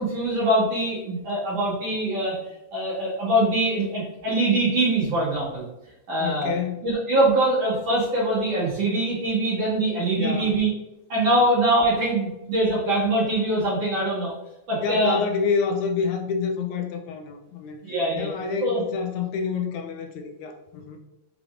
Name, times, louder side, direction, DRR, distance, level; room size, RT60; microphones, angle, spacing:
voice 1, 0.0-5.6 6.1-6.5 6.8-10.7 11.1-14.3 14.7-15.2 17.8-18.3 18.6-18.8, right 1 dB, 60° right, -8 dB, 2.0 m, -23 dB
voice 2, 6.2-6.8 10.1-10.6 14.8-17.8 18.1-21.0, left 5 dB, 80° left, 4 dB, 1.8 m, -28 dB
6.2 x 3.4 x 2.4 m, 0.93 s
omnidirectional pair, 3.7 m